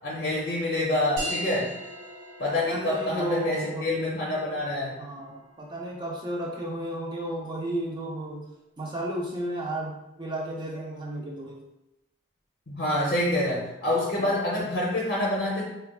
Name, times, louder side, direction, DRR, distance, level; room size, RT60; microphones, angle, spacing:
voice 1, 0.0-1.7 2.4-5.0 12.7-15.6, left 1 dB, 45° left, -5 dB, 0.6 m, -27 dB
sound 1, 1.2-6.2, equal, 85° right, 1.2 m, -39 dB
voice 2, 2.7-3.9 5.0-8.4 8.8-11.6 13.9-14.4, right 1 dB, 20° right, -3 dB, 0.6 m, -33 dB
4.5 x 2.3 x 2.3 m, 0.91 s
head